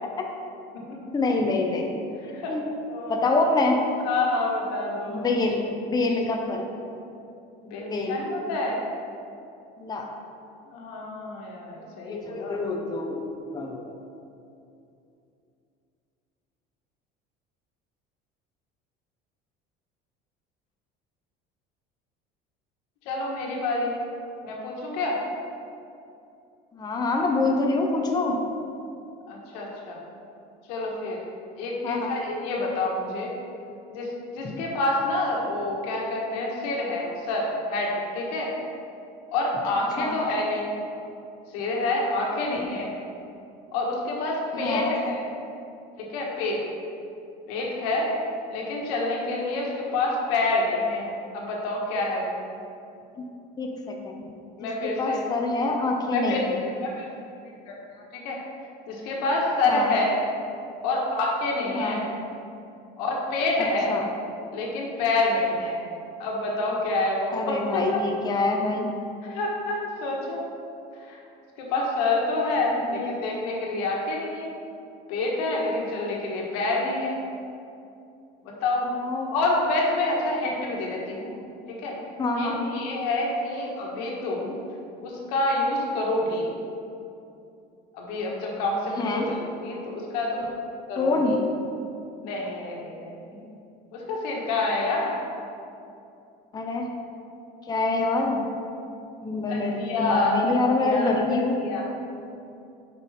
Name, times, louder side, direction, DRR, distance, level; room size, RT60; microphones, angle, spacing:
voice 1, 1.1-1.9 2.5-2.6 3.1-3.8 5.1-6.7 7.9-8.2 9.8-10.1 12.1-13.9 26.7-28.4 31.8-32.1 34.4-34.5 40.0-40.2 44.5-45.0 53.2-53.3 53.6-54.2 54.6-56.6 59.7-60.0 61.7-62.1 63.9-64.1 67.3-68.9 72.8-73.1 78.8-79.3 82.2-82.7 89.0-89.3 91.0-91.4 96.5-96.9 97.6-98.5 99.2-101.6, left 3 dB, 20° left, 1 dB, 0.7 m, -26 dB
voice 2, 2.9-3.4 4.0-5.2 7.6-8.8 10.7-12.6 23.0-23.9 24.4-25.2 29.3-30.0 30.7-31.2 31.6-33.3 33.9-38.5 39.3-40.7 41.5-42.9 43.7-45.2 46.0-46.6 47.5-48.1 48.5-52.4 54.6-55.2 56.1-56.4 56.8-57.1 57.7-58.4 58.9-60.2 60.8-62.0 63.0-64.0 64.5-65.8 66.2-68.0 69.2-70.4 71.0-71.2 71.6-74.5 75.1-77.2 78.4-78.9 79.3-81.4 81.8-81.9 82.4-84.6 85.0-86.5 87.9-90.6 90.9-91.2 92.2-93.5 93.9-95.2 99.5-100.5 100.8-101.1 101.6-101.9, left 2 dB, 85° left, -2 dB, 1.4 m, -27 dB
5.9 x 5.3 x 4.2 m, 2.6 s
cardioid pair, 115°, 19 cm